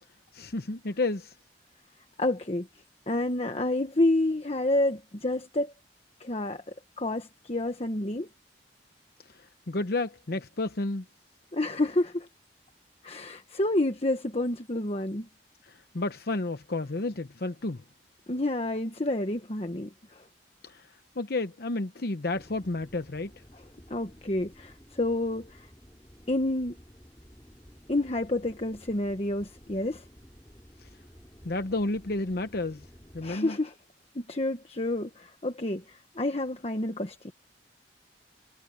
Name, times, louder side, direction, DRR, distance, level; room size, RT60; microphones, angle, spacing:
voice 1, 0.3-1.3 9.3-11.0 15.6-17.8 20.6-20.9 21.2-23.3 30.8-30.9 31.4-32.9 33.1-33.6, left 2 dB, 60° left, 0.9 m, -31 dB
voice 2, 2.2-2.7 3.1-5.7 6.2-8.3 11.5-12.3 13.0-15.3 18.3-20.3 23.9-25.7 26.3-26.8 27.9-30.0 33.2-33.7 34.1-37.3, left 1 dB, 35° left, 1.3 m, -29 dB
sound 1, 22.3-33.4, equal, 15° left, 4.2 m, -53 dB
head